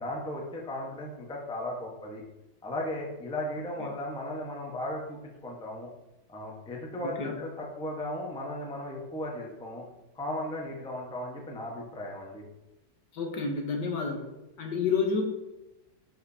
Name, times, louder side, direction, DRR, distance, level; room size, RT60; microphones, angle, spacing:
voice 1, 0.0-2.2 2.6-5.9 6.3-9.8 10.1-12.4, left 1 dB, 5° left, -2 dB, 0.8 m, -36 dB
voice 2, 7.0-7.4 13.1-14.3 14.6-15.2, left 5 dB, 65° left, 3 dB, 1.5 m, -30 dB
11.0 x 5.1 x 2.8 m, 0.98 s
omnidirectional pair, 2.2 m